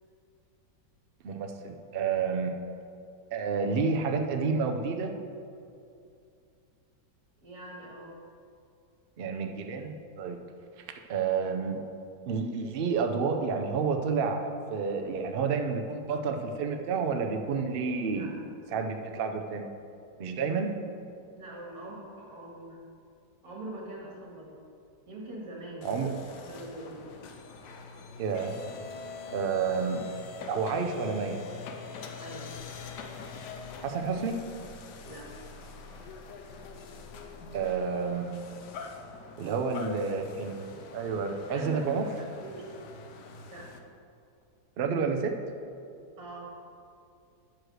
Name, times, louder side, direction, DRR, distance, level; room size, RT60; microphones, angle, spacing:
voice 1, 1.2-2.6 3.3-5.1 9.2-10.4 11.1-11.8 12.3-18.4 18.7-19.7 20.2-20.8 25.8-26.2 28.2-28.6 29.3-30.0 30.5-31.4 33.8-34.4 37.5-38.4 39.4-42.0 44.8-45.3, right 5 dB, 85° right, 4 dB, 0.5 m, -30 dB
voice 2, 7.4-8.2 18.2-18.3 21.3-22.8 23.4-24.5 25.1-26.1 26.4-27.1 32.1-32.5 35.0-35.3 41.1-42.1 42.4-42.7 43.5-43.7 46.2-46.5, right 2 dB, 55° right, -3 dB, 2.3 m, -43 dB
sound 1, 25.8-43.8, left 4 dB, 75° left, 1.3 m, -44 dB
10.5 x 4.8 x 6.3 m, 2.5 s
omnidirectional pair, 1.9 m